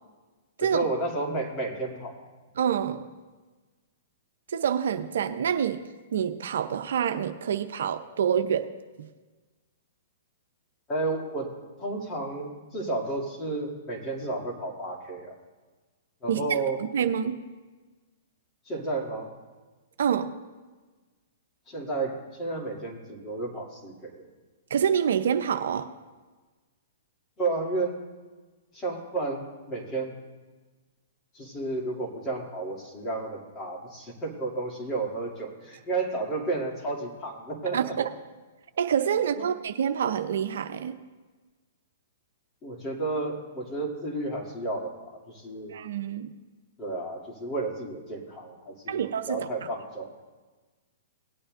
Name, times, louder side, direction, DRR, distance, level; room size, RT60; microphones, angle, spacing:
voice 1, 0.6-2.2 10.9-11.5 11.8-15.4 16.2-16.8 18.7-19.3 21.7-24.3 27.4-28.0 28.7-30.1 31.3-38.0 39.4-39.5 42.6-45.8 46.8-50.1, right 2 dB, 25° left, -1 dB, 2.6 m, -32 dB
voice 2, 2.6-3.0 4.5-5.8 6.1-8.7 16.3-16.6 16.9-17.4 20.0-20.3 24.7-25.9 37.7-38.1 38.8-40.9 45.7-46.3 48.9-49.4, right 8 dB, 70° right, 8 dB, 0.6 m, -27 dB
18.0 x 8.9 x 2.6 m, 1.3 s
hypercardioid pair, 130°, 0 cm